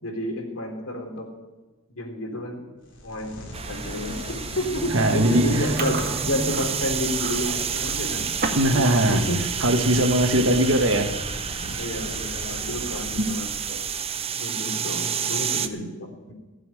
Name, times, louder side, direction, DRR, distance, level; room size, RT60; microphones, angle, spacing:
voice 1, 0.0-1.3 2.0-2.6 3.0-8.3 8.6-9.5 10.0-10.4 11.6-13.5 14.4-16.3, left 1 dB, 85° left, 2 dB, 3.6 m, -31 dB
sound 1, 2.8-14.3, left 1 dB, 60° left, 3.5 m, -38 dB
sound 2, 3.5-15.7, right 7 dB, 30° right, 0.7 m, -29 dB
voice 2, 4.9-5.7 8.5-9.2 9.6-11.1 11.7-11.8 13.2-13.3, right 1 dB, 65° right, 5 dB, 1.8 m, -20 dB
Chewing mastication, 5.5-8.8 9.1-9.4 9.8-10.1 10.8-10.9 11.1-11.5 11.9-12.0 13.4-14.0, right 3 dB, 50° right, 2.0 m, -34 dB
17.0 x 7.6 x 10.0 m, 1.2 s
head